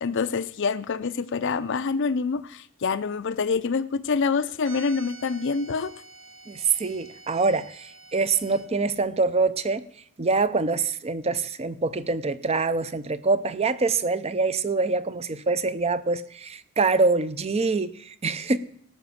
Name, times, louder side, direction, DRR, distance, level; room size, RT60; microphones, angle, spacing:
voice 1, 0.0-5.9, left 5 dB, 55° left, 0.5 m, -26 dB
sound 1, 4.6-8.7, right 3 dB, 75° right, 2.0 m, -47 dB
voice 2, 6.5-9.8 10.2-18.6, right 4 dB, 30° right, 0.6 m, -25 dB
18.0 x 6.1 x 7.1 m
head